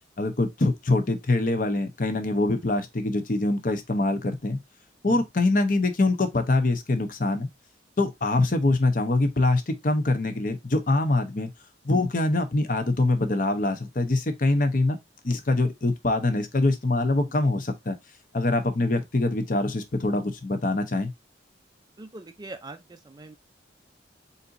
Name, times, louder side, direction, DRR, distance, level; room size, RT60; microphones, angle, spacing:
voice 1, 0.2-4.6 5.0-7.5 8.0-11.5 11.8-15.0 15.2-17.9 18.3-21.1, left 2 dB, 45° left, 0.8 m, -24 dB
voice 2, 22.0-22.8 23.1-23.4, right 2 dB, 20° right, 0.4 m, -41 dB
4.3 x 3.9 x 2.5 m
head